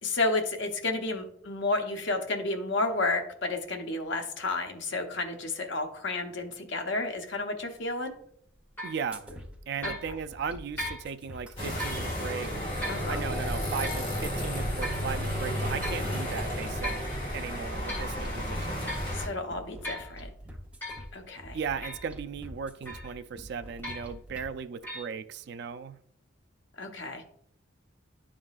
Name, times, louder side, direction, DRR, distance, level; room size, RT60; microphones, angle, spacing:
voice 1, 0.0-8.1 9.8-9.9 12.9-13.2 19.1-20.3 21.1-21.6 26.8-27.2, left 2 dB, 60° left, 0.9 m, -31 dB
sound 1, 8.8-9.0 9.8-10.1 10.8-11.1 11.8-12.0 12.8-13.1 13.8-14.1 14.8-15.1 15.8-16.1 16.8-17.1 17.6-18.1 18.9-19.1 19.8-20.1 20.8-21.1 21.8-22.1 22.9-23.2 23.8-24.2 24.8-25.0, equal, 10° left, 1.8 m, -37 dB
voice 2, 8.8-9.4 9.7-12.7 13.1-18.9 21.5-26.0, right 6 dB, 55° right, 0.3 m, -37 dB
sound 2, 9.1-24.5, equal, 5° right, 0.8 m, -46 dB
sound 3, 11.6-19.3, equal, 25° left, 1.5 m, -32 dB
11.0 x 3.7 x 2.4 m
head